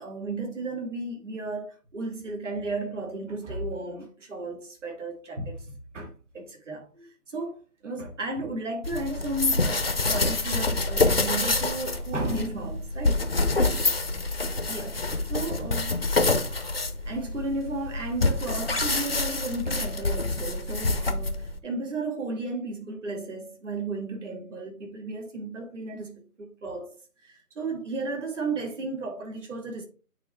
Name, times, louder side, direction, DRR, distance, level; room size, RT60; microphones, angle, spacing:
voice 1, 0.0-7.6 7.8-13.3 14.7-16.0 16.9-26.9 27.2-29.8, right 2 dB, 50° right, 2.1 m, -34 dB
sound 1, 8.8-21.6, left 2 dB, 40° left, 0.5 m, -26 dB
8.9 x 3.1 x 3.4 m
figure-of-eight pair, 160°, 46 cm